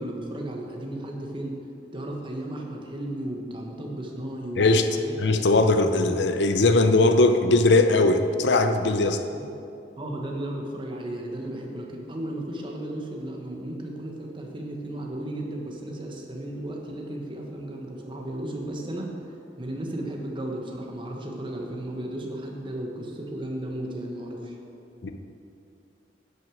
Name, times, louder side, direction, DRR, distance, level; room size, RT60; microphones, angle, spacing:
voice 1, 0.0-1.6 1.9-5.2 9.3-9.5 10.0-19.1 19.6-24.5, right 1 dB, 25° right, 0 dB, 1.2 m, -34 dB
voice 2, 4.6-4.9 5.2-9.2 25.0-25.1, left 2 dB, 70° left, 7 dB, 0.6 m, -20 dB
10.5 x 6.2 x 6.3 m, 2.7 s
head